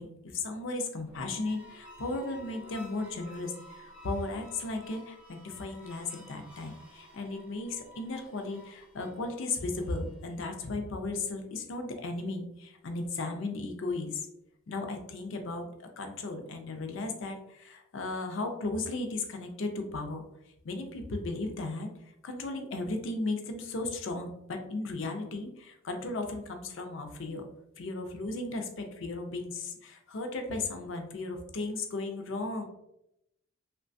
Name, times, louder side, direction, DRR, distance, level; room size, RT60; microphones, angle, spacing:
voice 1, 0.0-14.2 14.7-20.3 20.6-21.9 22.2-27.5 27.8-32.7, left 2 dB, 55° left, 5 dB, 0.4 m, -35 dB
sound 1, 1.0-10.4, left 1 dB, 5° right, 0.4 m, -53 dB
3.1 x 2.2 x 2.5 m, 0.83 s
head